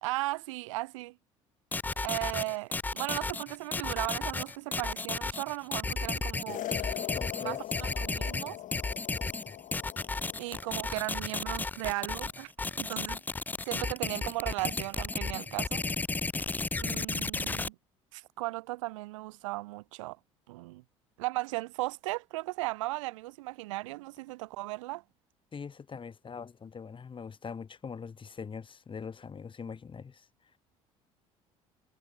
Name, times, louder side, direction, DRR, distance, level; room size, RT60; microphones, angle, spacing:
voice 1, 0.0-1.2 2.0-6.7 7.4-7.6 8.0-8.6 10.4-12.5 12.8-13.2 13.7-15.8 16.8-17.8 18.1-20.2 20.5-20.8 21.2-25.0, right 21 dB, 70° right, 0.7 m, -36 dB
sound 1, 1.7-17.7, left 3 dB, 10° left, 0.4 m, -33 dB
sound 2, 6.5-10.9, left 13 dB, 50° left, 2.4 m, -40 dB
voice 2, 7.1-7.6 16.9-17.0 25.5-30.3, left 6 dB, 30° left, 3.1 m, -42 dB
figure-of-eight pair, 60°, 17 cm